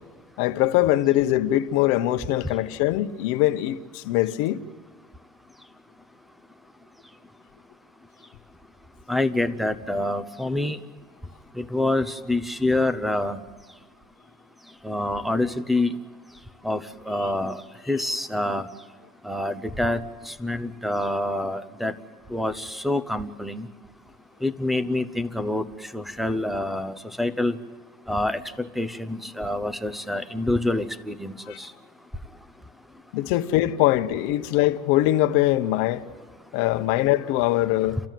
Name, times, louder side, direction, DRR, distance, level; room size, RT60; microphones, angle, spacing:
voice 1, 0.4-4.6 31.5-31.6 33.1-36.0 36.5-38.0, left 15 dB, 75° left, 1.0 m, -22 dB
voice 2, 9.1-10.8 11.6-13.4 14.8-16.0 16.6-17.6 17.9-18.7 19.2-20.0 20.3-21.9 22.3-23.7 24.4-25.7 25.9-27.6 28.1-31.7, left 1 dB, ahead, 0.8 m, -26 dB
30.0 x 13.5 x 9.2 m
cardioid pair, 130°, 20 cm